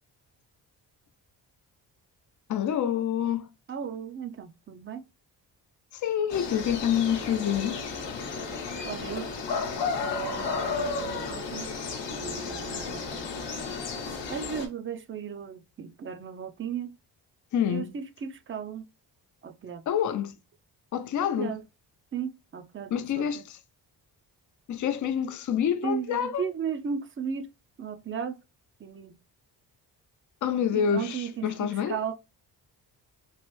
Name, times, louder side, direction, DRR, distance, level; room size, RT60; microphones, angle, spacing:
voice 1, 2.5-3.5 5.9-7.8 14.0-14.1 17.5-17.9 19.9-20.4 20.9-21.6 22.9-23.4 24.7-26.4 30.4-32.0, left 8 dB, 45° left, 0.5 m, -27 dB
voice 2, 3.7-5.0 8.8-9.3 10.0-11.7 12.1-13.3 14.3-17.0 17.7-18.9 19.4-19.8 21.2-21.6 22.1-23.4 25.8-27.5 27.8-28.4 28.8-29.2 30.7-32.1, right 7 dB, 30° right, 0.5 m, -36 dB
sound 1, 6.3-14.7, left 4 dB, 70° left, 0.9 m, -33 dB
3.1 x 2.5 x 3.1 m
cardioid pair, 60°, 43 cm